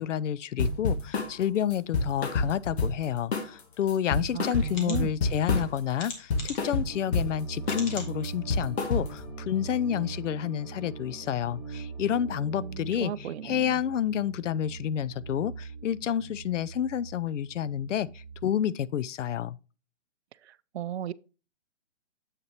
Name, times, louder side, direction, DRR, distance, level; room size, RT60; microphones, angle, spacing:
voice 1, 0.0-19.6, left 10 dB, 85° left, 0.5 m, -29 dB
sound 1, 0.6-1.3 1.7-3.1 3.3-3.6 3.9-5.8 6.0-7.3 7.7-8.0 8.2-9.3, left 3 dB, 60° left, 2.0 m, -28 dB
sound 2, 3.9-4.0 4.7-5.0 6.0-6.7 7.6-8.1 8.7-8.8 9.1-9.2, left 4 dB, 40° left, 2.0 m, -39 dB
voice 2, 4.3-5.1 12.6-13.8 20.7-21.1, right 11 dB, 65° right, 0.5 m, -35 dB
sound 3, 6.9-18.5, right 4 dB, 15° left, 1.5 m, -41 dB
7.5 x 6.5 x 2.9 m
hypercardioid pair, 150°, 36 cm